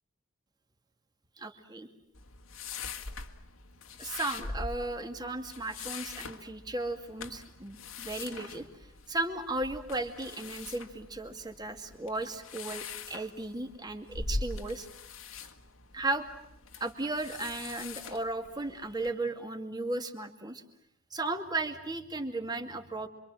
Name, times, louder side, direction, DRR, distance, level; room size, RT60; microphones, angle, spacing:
voice 1, 1.4-1.9 4.0-8.7 9.1-14.9 15.9-16.3 16.8-20.6 21.1-23.1, right 2 dB, 20° right, 6 dB, 2.3 m, -35 dB
sound 1, 2.1-19.1, left 3 dB, 80° left, 2.1 m, -43 dB
27.0 x 25.0 x 7.7 m, 0.76 s
head